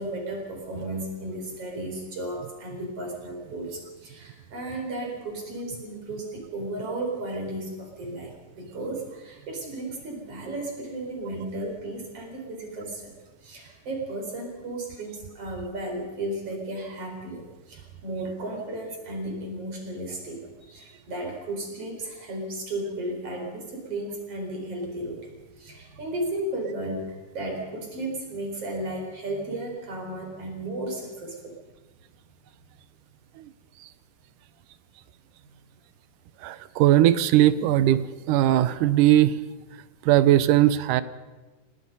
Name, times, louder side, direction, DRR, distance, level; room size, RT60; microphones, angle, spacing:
voice 1, 0.0-13.1 13.4-31.6, right 1 dB, 40° right, 1 dB, 5.6 m, -34 dB
voice 2, 36.4-39.4 40.0-41.0, right 13 dB, 75° right, 15 dB, 2.1 m, -19 dB
27.0 x 18.0 x 5.5 m, 1.2 s
omnidirectional pair, 4.2 m